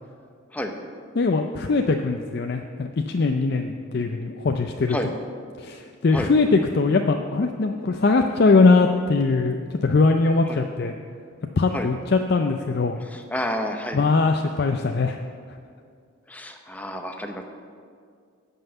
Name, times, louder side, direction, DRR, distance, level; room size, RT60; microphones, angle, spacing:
voice 1, 1.2-5.0 5.6-10.9 11.6-13.0 13.9-15.2, left 3 dB, 50° left, 5 dB, 0.4 m, -21 dB
voice 2, 13.0-14.1 16.3-17.4, equal, 5° left, 4 dB, 0.7 m, -30 dB
11.0 x 5.6 x 8.0 m, 2.2 s
head